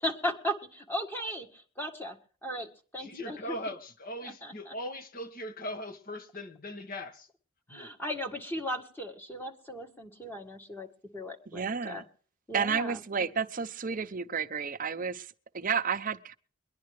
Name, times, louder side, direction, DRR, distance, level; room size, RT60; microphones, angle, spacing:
voice 1, 0.0-2.2 2.4-2.7 2.9-3.7 4.2-4.7 7.7-10.9 11.1-12.0 12.5-13.0, equal, 10° left, 1.7 m, -36 dB
voice 2, 3.0-7.3 7.7-7.9, left 1 dB, 45° left, 1.5 m, -40 dB
voice 3, 11.5-12.0 12.5-16.4, right 6 dB, 45° right, 0.7 m, -31 dB
23.0 x 10.5 x 3.2 m
head